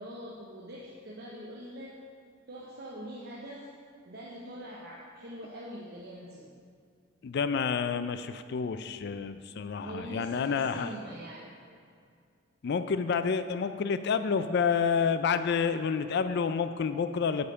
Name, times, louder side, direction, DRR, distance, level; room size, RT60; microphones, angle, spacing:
voice 1, 0.0-2.0 2.5-3.7 4.0-6.5 9.8-11.5, equal, 55° right, -3 dB, 0.9 m, -43 dB
voice 2, 7.2-10.9 12.6-17.5, left 6 dB, 60° left, 11 dB, 0.4 m, -29 dB
8.1 x 5.4 x 5.7 m, 2.3 s
head